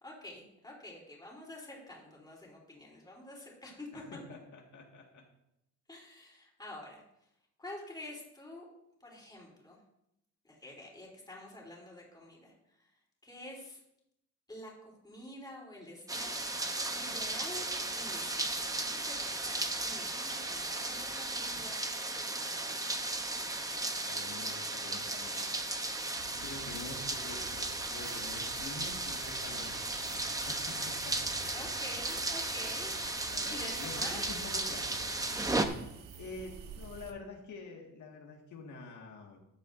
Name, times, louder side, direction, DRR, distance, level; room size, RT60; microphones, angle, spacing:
voice 1, 0.0-4.0 5.9-7.0 7.6-8.7 9.0-9.8 10.4-12.5 13.2-13.8 14.5-16.3 16.9-17.7 17.9-18.7 19.0-21.8 22.1-22.8 26.8-27.0 31.5-34.2, left 1 dB, 10° left, -2 dB, 3.3 m, -48 dB
voice 2, 3.9-5.3 23.9-25.7 26.4-30.0 30.4-31.4 33.3-35.1 36.2-39.4, left 3 dB, 65° left, 0 dB, 1.8 m, -47 dB
sound 1, 16.1-35.7, right 2 dB, 10° right, 0.7 m, -35 dB
sound 2, 26.2-37.1, right 6 dB, 80° right, 1.2 m, -50 dB
14.0 x 10.5 x 2.6 m, 0.82 s
cardioid pair, 150°, 32 cm